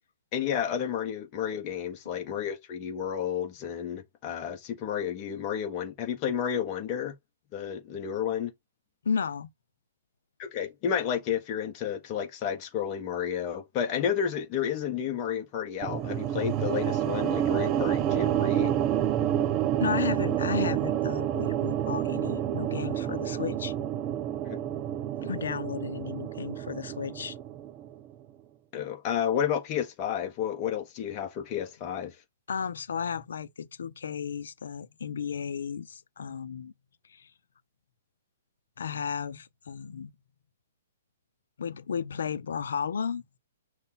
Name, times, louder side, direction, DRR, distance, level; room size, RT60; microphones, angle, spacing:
voice 1, 0.3-7.1 7.5-8.5 10.4-18.7 24.4-24.6 28.7-32.1, left 8 dB, 20° left, 1.1 m, -31 dB
voice 2, 9.0-9.5 19.8-23.7 25.2-27.4 32.5-36.7 37.1-37.3 38.8-40.1 41.6-43.2, left 6 dB, 75° left, 0.7 m, -33 dB
sound 1, 15.8-28.1, right 11 dB, 20° right, 0.4 m, -29 dB
5.5 x 2.3 x 4.1 m
hypercardioid pair, 170°, 0 cm